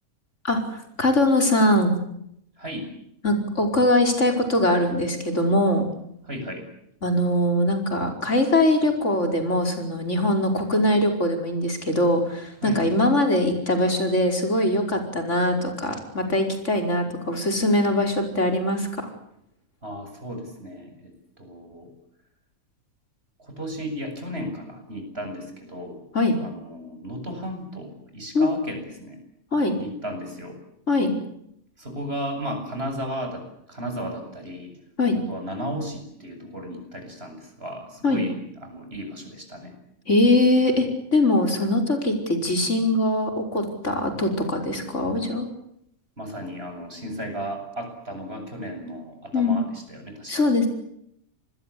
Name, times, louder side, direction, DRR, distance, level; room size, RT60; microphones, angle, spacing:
voice 1, 0.4-1.9 3.2-5.9 7.0-19.1 26.1-26.4 28.3-28.5 29.5-29.7 30.9-31.1 35.0-35.2 38.0-38.2 40.1-45.5 49.3-49.6 50.3-50.7, left 1 dB, 55° left, 4 dB, 5.4 m, -22 dB
voice 2, 2.6-2.9 6.3-6.7 12.6-12.8 19.8-21.1 21.4-21.9 23.4-26.0 26.4-29.2 29.8-30.6 31.8-34.7 35.3-39.7 46.2-50.3, equal, 45° right, 5 dB, 8.0 m, -34 dB
27.0 x 21.0 x 8.5 m, 0.75 s
omnidirectional pair, 1.5 m